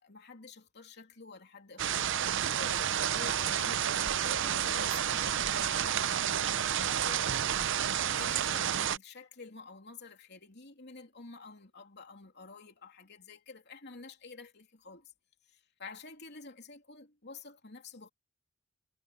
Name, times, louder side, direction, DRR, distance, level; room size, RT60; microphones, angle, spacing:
voice 1, 0.0-6.3 6.8-15.1 15.5-18.1, left 4 dB, 55° left, 3.1 m, -49 dB
sound 1, 1.8-9.0, right 9 dB, 60° right, 0.6 m, -30 dB
head